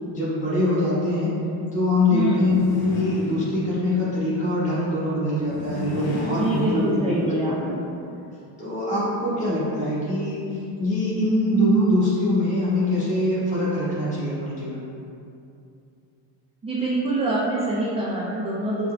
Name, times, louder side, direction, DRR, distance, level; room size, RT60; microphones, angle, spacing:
voice 1, 0.1-1.3 1.7-7.5 8.6-10.4 10.8-14.9, left 1 dB, 15° left, -10 dB, 1.2 m, -23 dB
voice 2, 2.1-2.5 6.3-7.8 16.6-18.9, right 1 dB, 15° right, -7 dB, 0.4 m, -25 dB
sound 1, 2.3-4.0 5.4-7.5, left 2 dB, 50° left, 0.8 m, -32 dB
5.6 x 2.3 x 2.2 m, 2.6 s
cardioid pair, 100°, 46 cm